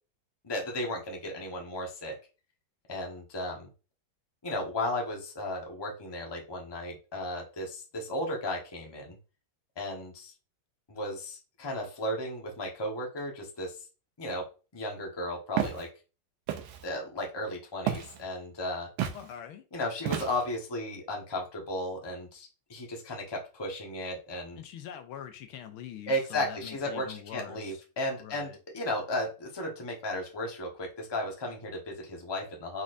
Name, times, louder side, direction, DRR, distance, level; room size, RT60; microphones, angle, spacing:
voice 1, 0.4-2.2 2.9-3.7 4.4-9.2 9.8-10.3 10.9-13.7 14.2-15.9 16.8-18.9 19.7-24.6 26.1-32.8, left 1 dB, 20° left, 0.8 m, -35 dB
Walk footsteps, 15.6-15.8 16.5-16.8 17.9-18.2 19.0-19.2 20.0-20.6, right 10 dB, 75° right, 1.4 m, -31 dB
voice 2, 19.1-19.6 24.5-27.8 28.2-28.6, left 9 dB, 85° left, 1.5 m, -44 dB
4.7 x 4.1 x 2.5 m
omnidirectional pair, 2.3 m